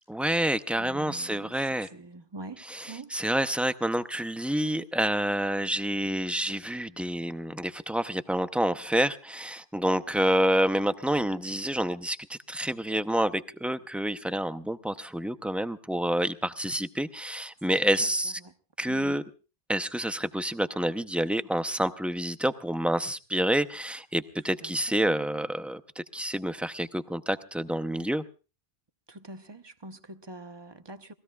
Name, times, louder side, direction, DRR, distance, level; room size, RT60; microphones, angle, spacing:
voice 1, 0.1-1.9 2.6-18.4 18.8-19.2 19.7-28.2, right 1 dB, ahead, 0.5 m, -28 dB
voice 2, 0.8-1.5 1.9-3.1 18.0-18.1 18.4-18.5 18.9-19.2 24.6-25.1 29.1-31.1, right 2 dB, 25° right, 0.9 m, -44 dB
28.0 x 19.0 x 2.4 m
omnidirectional pair, 1.1 m